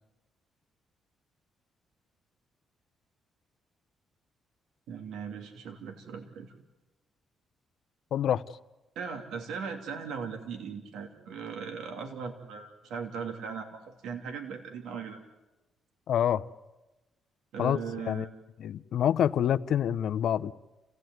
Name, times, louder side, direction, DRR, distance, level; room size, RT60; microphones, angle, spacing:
voice 1, 4.9-6.5 8.9-15.2 17.5-18.3, right 6 dB, 80° right, 5 dB, 3.0 m, -38 dB
voice 2, 8.1-8.4 16.1-16.4 17.6-18.3 18.6-20.5, left 10 dB, 70° left, 14 dB, 0.8 m, -27 dB
29.5 x 16.5 x 9.4 m, 1.1 s
cardioid pair, 90°, 0 cm